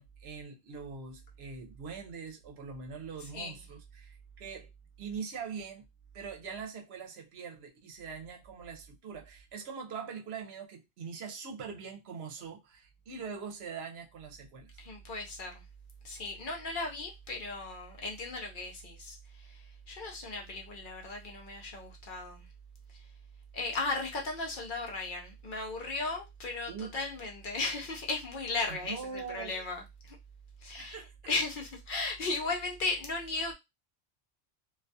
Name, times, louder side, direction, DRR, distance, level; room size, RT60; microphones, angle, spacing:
voice 1, 0.0-4.7 5.0-5.8 6.1-14.7 26.7-26.9 28.7-29.5 30.7-31.1, right 6 dB, 75° right, 0.8 m, -42 dB
voice 2, 14.8-15.6 16.0-22.5 23.5-30.2 30.6-31.0 31.3-33.5, left 3 dB, 55° left, 0.7 m, -36 dB
2.3 x 2.2 x 2.5 m
omnidirectional pair, 1.1 m